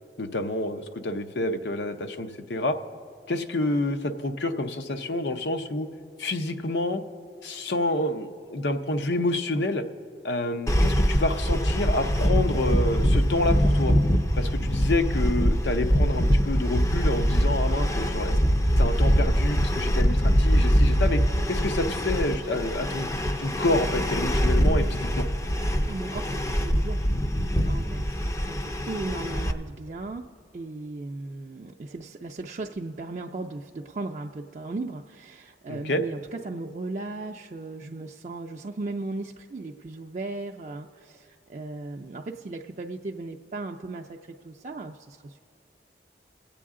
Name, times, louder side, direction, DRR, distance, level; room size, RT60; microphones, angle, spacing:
voice 1, 0.2-2.7 3.3-5.9 6.2-7.0 7.4-9.8 10.2-13.9 14.4-18.3 18.8-21.2 21.5-23.1 23.4-25.2 35.7-36.0, left 2 dB, 85° left, 8 dB, 0.7 m, -28 dB
sound 1, 10.7-29.5, equal, 15° left, 0.4 m, -23 dB
voice 2, 25.5-27.0 27.7-28.0 28.4-30.3 30.5-45.4, right 2 dB, 40° right, 1 dB, 0.4 m, -36 dB
23.5 x 8.5 x 3.7 m, 2.2 s
head